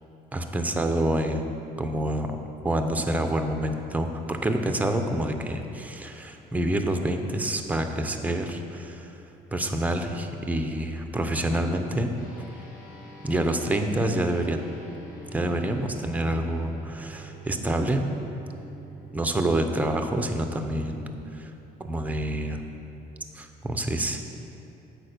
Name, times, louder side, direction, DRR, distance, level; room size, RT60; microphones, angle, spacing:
voice 1, 0.3-2.4 2.6-9.1 9.5-12.1 13.2-14.6 15.3-18.1 19.1-21.5 21.8-22.6 23.3-24.3, right 1 dB, 10° right, 5 dB, 0.7 m, -27 dB
sound 1, 12.2-21.9, right 2 dB, 50° left, 1.8 m, -46 dB
8.6 x 4.9 x 6.7 m, 2.8 s
cardioid pair, 110°, 17 cm